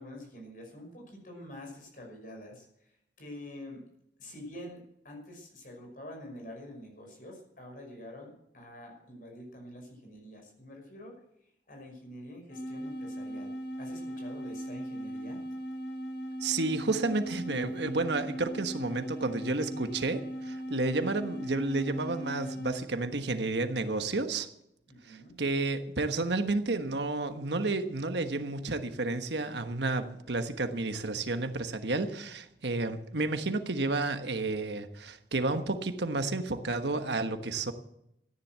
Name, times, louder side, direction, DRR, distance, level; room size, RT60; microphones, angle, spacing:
voice 1, 0.0-3.8 4.2-11.2 11.7-15.4 24.9-25.4, left 1 dB, 50° left, 2 dB, 5.6 m, -47 dB
sound 1, 12.5-22.9, equal, 70° left, 3.3 m, -38 dB
voice 2, 16.4-24.5 25.1-37.7, right 3 dB, 80° right, 8 dB, 1.3 m, -31 dB
14.0 x 10.0 x 7.5 m, 0.78 s
head